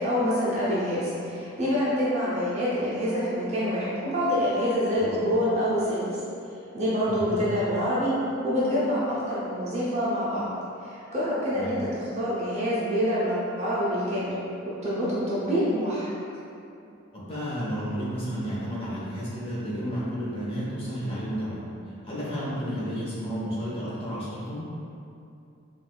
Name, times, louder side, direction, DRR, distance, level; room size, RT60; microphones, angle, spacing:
voice 1, 0.0-6.0 6.7-8.1 8.4-10.5 10.8-14.3 14.8-16.1, equal, 30° right, -9 dB, 0.5 m, -26 dB
voice 2, 7.0-7.4 11.5-11.8 17.1-21.6 22.0-24.6, equal, 25° left, -8 dB, 0.8 m, -32 dB
4.5 x 2.4 x 2.2 m, 2.6 s
head